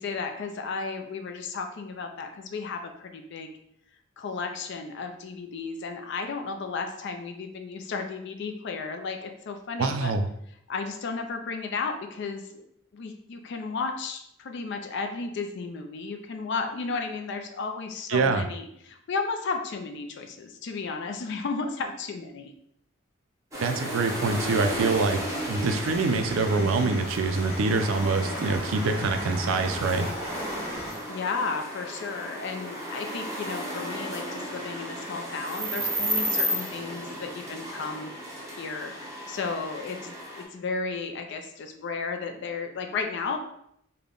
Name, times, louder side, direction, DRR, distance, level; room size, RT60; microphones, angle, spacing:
voice 1, 0.0-3.5 4.2-10.2 10.7-12.6 12.9-22.5 31.1-38.1 38.6-38.9 39.3-43.4, left 4 dB, 60° left, 5 dB, 0.4 m, -33 dB
voice 2, 9.8-10.3 18.1-18.4 23.6-25.2 25.5-30.1, right 3 dB, 75° right, 7 dB, 0.4 m, -25 dB
sound 1, 23.5-40.4, right 1 dB, 15° right, 0.7 m, -34 dB
sound 2, 24.2-30.9, equal, 15° left, 1.3 m, -39 dB
3.4 x 2.2 x 3.7 m, 0.74 s
head